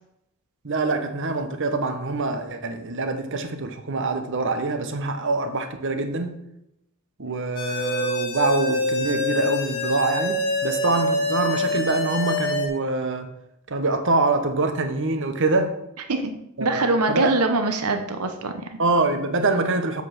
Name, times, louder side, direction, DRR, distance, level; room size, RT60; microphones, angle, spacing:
voice 1, 0.6-6.4 7.2-13.3 13.7-15.8 16.6-17.4 18.8-20.0, right 3 dB, 55° right, 1.0 m, -25 dB
sound 1, 7.6-12.7, left 1 dB, 45° left, 1.4 m, -25 dB
voice 2, 16.6-18.8, right 2 dB, 85° right, 1.0 m, -23 dB
7.8 x 5.4 x 6.3 m
head